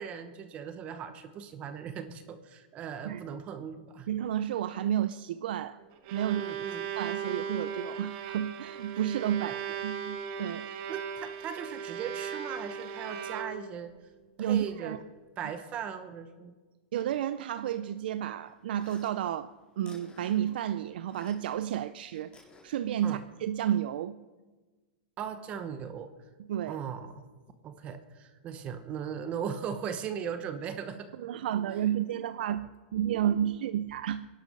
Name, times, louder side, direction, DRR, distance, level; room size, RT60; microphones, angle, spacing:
voice 1, 0.0-4.1 6.2-6.8 10.9-13.9 14.4-15.0 15.4-16.5 23.0-23.2 25.2-26.1 26.7-27.2 27.6-31.3, right 7 dB, 20° right, 0.9 m, -38 dB
voice 2, 4.1-5.8 6.1-6.4 6.8-10.7 14.4-15.0 16.9-24.2 26.5-26.8 31.2-34.3, right 10 dB, 70° right, 0.5 m, -31 dB
Bowed string instrument, 5.8-13.9, right 7 dB, 40° right, 1.4 m, -38 dB
sound 1, 18.4-21.6 21.9-23.4, left 3 dB, 20° left, 4.1 m, -57 dB
23.5 x 11.5 x 5.4 m
supercardioid pair, 170°, 5 cm